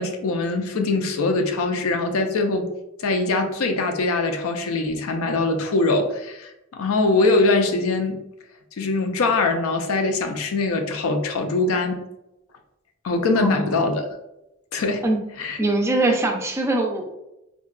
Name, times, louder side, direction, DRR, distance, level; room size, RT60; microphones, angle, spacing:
voice 1, 0.0-2.7 3.0-8.2 8.8-12.0 13.0-14.0 14.7-15.0 15.4-15.6, left 3 dB, 90° left, 6 dB, 0.4 m, -22 dB
voice 2, 13.3-13.7 15.0-15.2 15.6-17.1, right 2 dB, 15° right, 2 dB, 0.3 m, -22 dB
3.7 x 2.2 x 2.3 m, 0.91 s
head